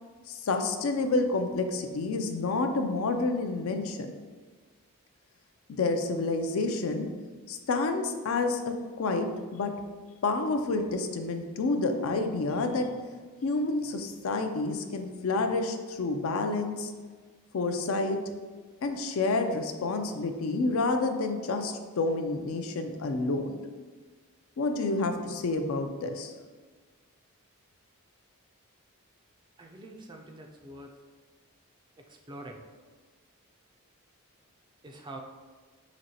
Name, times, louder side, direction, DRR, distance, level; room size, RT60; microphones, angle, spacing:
voice 1, 0.3-4.1 5.7-7.1 7.5-9.7 10.2-12.9 13.4-16.9 17.5-18.2 18.8-23.5 24.6-26.3, left 3 dB, 65° left, 6 dB, 0.4 m, -29 dB
voice 2, 29.6-30.9 32.0-32.7 34.8-35.2, right 1 dB, 20° right, 1 dB, 0.4 m, -45 dB
5.1 x 3.0 x 2.8 m, 1.4 s
head